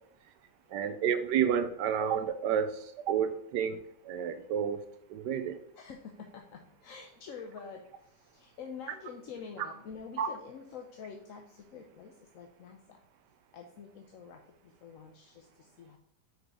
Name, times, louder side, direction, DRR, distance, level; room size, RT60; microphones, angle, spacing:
voice 1, 0.7-4.8 5.1-5.6 10.2-10.3, right 8 dB, 80° right, 9 dB, 1.2 m, -30 dB
voice 2, 5.7-13.0 13.5-16.0, left 6 dB, 60° left, 2 dB, 1.1 m, -47 dB
6.3 x 5.0 x 4.8 m, 0.74 s
omnidirectional pair, 1.8 m